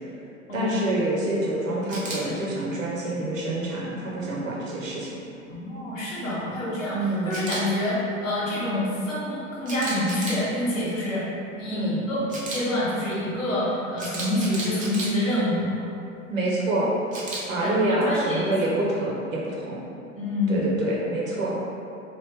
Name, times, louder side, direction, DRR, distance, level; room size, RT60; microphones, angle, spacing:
voice 1, 0.5-5.2 6.9-7.4 11.7-12.0 16.3-16.9 17.5-19.8 20.5-21.5, right 1 dB, 80° right, -5 dB, 0.9 m, -26 dB
Camera, 1.9-2.2 7.3-7.6 9.7-10.4 12.3-12.6 14.0-15.1 17.1-17.4, right 3 dB, 20° right, 0.7 m, -33 dB
voice 2, 5.5-7.9 8.2-11.3 11.5-12.2 12.5-15.8 17.6-18.5 20.1-20.6, left 1 dB, 75° left, -8 dB, 1.2 m, -27 dB
3.2 x 2.4 x 3.3 m, 2.7 s
figure-of-eight pair, 80°, 39 cm